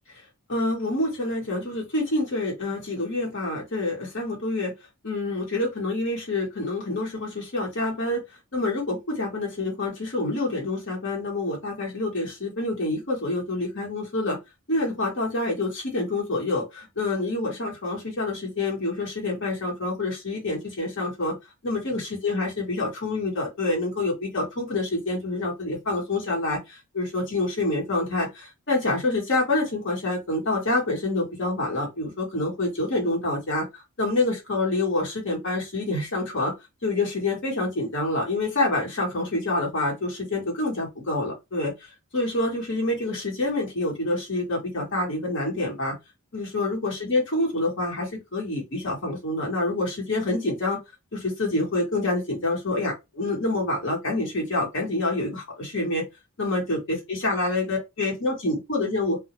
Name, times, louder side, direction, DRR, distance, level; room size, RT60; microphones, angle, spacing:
voice 1, 0.5-4.7 5.0-8.2 8.5-14.4 14.7-21.4 21.6-36.5 36.8-41.7 42.1-46.0 46.3-50.8 51.1-56.0 56.4-56.8 57.2-59.2, left 2 dB, 60° left, 1.2 m, -27 dB
2.3 x 2.2 x 2.9 m
head